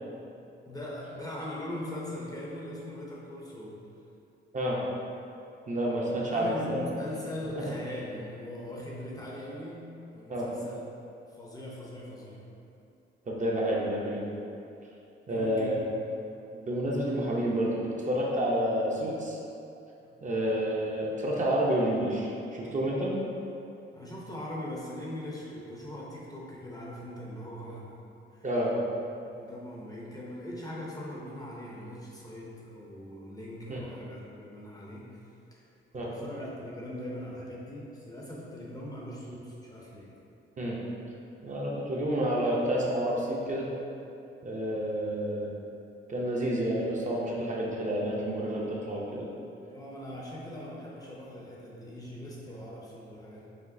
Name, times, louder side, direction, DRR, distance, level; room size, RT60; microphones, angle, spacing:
voice 1, 0.7-3.9 6.3-10.8 11.3-12.6 15.3-15.8 23.9-28.5 29.2-35.2 35.5-35.6 35.9-40.1 49.7-53.5, left 1 dB, 20° left, -5 dB, 0.6 m, -41 dB
voice 2, 5.7-6.8 10.3-10.5 13.3-14.3 15.3-15.8 16.5-19.4 20.2-23.1 28.4-28.7 33.7-33.8 35.9-36.1 40.6-40.8 41.4-43.7 44.4-45.5 46.1-49.3, right 1 dB, 35° right, -4 dB, 0.6 m, -29 dB
5.0 x 3.1 x 2.6 m, 2.7 s
wide cardioid pair, 140°, 21 cm